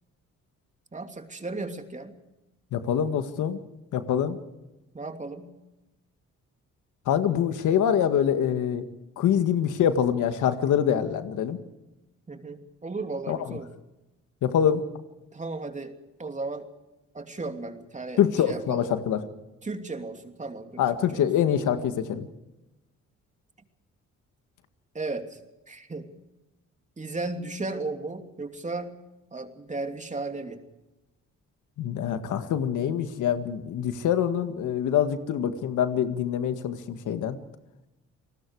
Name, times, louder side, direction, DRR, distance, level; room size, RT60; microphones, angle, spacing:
voice 1, 0.9-2.1 4.9-5.5 12.3-13.7 15.3-15.9 16.2-16.7 17.1-18.9 19.6-20.8 21.1-21.5 24.9-25.4 25.7-26.1 27.0-28.9 29.3-30.6, right 3 dB, 25° right, 5 dB, 2.9 m, -35 dB
voice 2, 2.7-3.6 3.9-4.4 7.1-8.8 9.2-11.6 13.3-13.4 14.4-14.8 18.2-19.2 20.8-22.3 31.8-37.4, left 9 dB, 80° left, 8 dB, 1.9 m, -25 dB
29.5 x 20.0 x 4.9 m, 0.99 s
cardioid pair, 90°, 30 cm